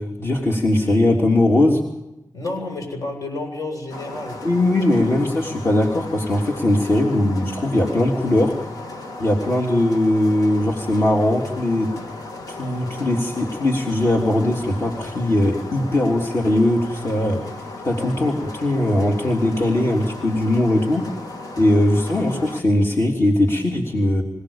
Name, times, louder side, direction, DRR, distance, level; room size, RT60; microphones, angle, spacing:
voice 1, 0.0-1.8 4.4-8.5 9.2-11.9 12.5-17.4 17.8-21.0 21.6-24.2, left 1 dB, 40° left, 0 dB, 3.3 m, -20 dB
voice 2, 2.3-4.4 17.9-18.1, left 2 dB, 65° left, 3 dB, 8.0 m, -30 dB
sound 1, 3.9-22.6, left 2 dB, 90° left, 3.0 m, -36 dB
27.0 x 18.0 x 7.2 m, 0.93 s
wide cardioid pair, 125°, 6 cm